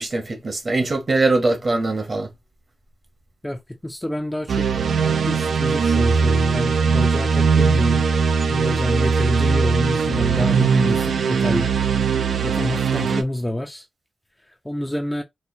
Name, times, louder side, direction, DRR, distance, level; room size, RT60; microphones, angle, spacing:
voice 1, 0.0-2.3, right 2 dB, 35° right, 0.9 m, -22 dB
voice 2, 3.4-4.8 5.3-8.1 8.5-11.7 12.4-13.8 14.6-15.2, left 1 dB, 10° left, 0.4 m, -27 dB
sound 1, 4.5-13.2, right 5 dB, 75° right, 0.5 m, -20 dB
4.2 x 2.1 x 2.6 m
wide cardioid pair, 175°, 0 cm